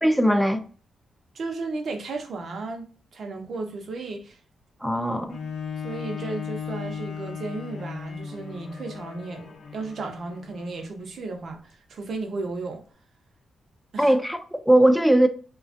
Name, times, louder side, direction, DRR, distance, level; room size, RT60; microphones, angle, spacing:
voice 1, 0.0-0.6 4.8-5.4 14.0-15.3, right 1 dB, ahead, 0.4 m, -19 dB
voice 2, 1.3-4.4 5.8-12.8 13.9-14.1, right 3 dB, 65° right, 0.6 m, -34 dB
Bowed string instrument, 5.3-10.9 11.6-11.7, left 6 dB, 65° left, 0.5 m, -36 dB
2.4 x 2.2 x 2.5 m
cardioid pair, 70°, 0 cm